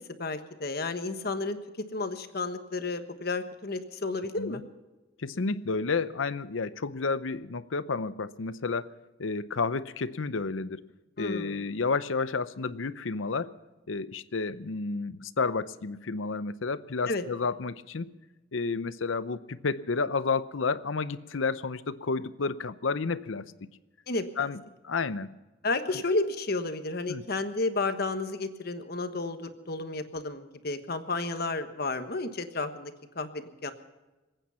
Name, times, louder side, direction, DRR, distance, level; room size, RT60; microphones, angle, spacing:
voice 1, 0.2-1.6 1.9-4.6 11.2-11.6 17.1-17.2 24.1-24.5 25.6-33.7, left 3 dB, 55° left, 9 dB, 1.3 m, -32 dB
voice 2, 5.2-8.9 9.2-10.8 11.2-13.5 13.9-18.1 18.5-23.5 24.4-25.3 25.9-26.0 27.1-27.2, left 4 dB, 90° left, 15 dB, 0.7 m, -31 dB
27.0 x 9.1 x 5.7 m, 1.1 s
head